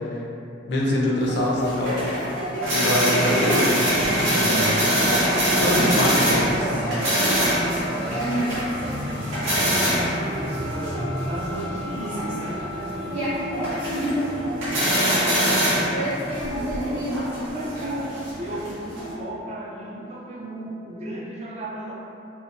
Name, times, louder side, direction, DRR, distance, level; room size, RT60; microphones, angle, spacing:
voice 1, 0.7-2.0 2.7-5.0 5.5-7.0, equal, 55° left, -3 dB, 0.4 m, -24 dB
sound 1, 1.2-19.1, equal, 90° right, 1.1 m, -24 dB
sound 2, 4.9-20.6, left 1 dB, 65° right, 0.8 m, -38 dB
voice 2, 6.1-7.1 7.6-17.1 17.5-21.9, right 1 dB, 35° right, -4 dB, 0.3 m, -36 dB
2.5 x 2.1 x 2.8 m, 2.8 s
head